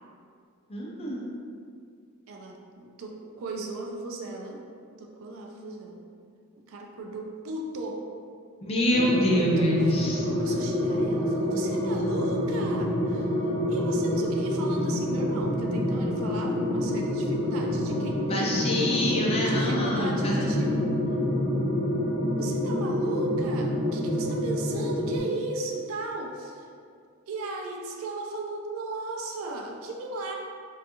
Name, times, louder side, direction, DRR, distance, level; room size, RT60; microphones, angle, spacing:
voice 1, 0.7-1.2 8.6-10.2 18.2-20.7, left 1 dB, 30° left, -3 dB, 0.4 m, -26 dB
voice 2, 2.3-4.6 5.0-6.0 6.6-8.1 9.3-9.7 10.3-13.4 13.7-18.6 19.4-21.0 22.4-26.7 27.3-30.3, right 2 dB, 75° right, 1 dB, 0.4 m, -36 dB
sound 1, 8.9-25.2, left 1 dB, 65° left, 0.7 m, -27 dB
2.5 x 2.3 x 2.8 m, 2.2 s
head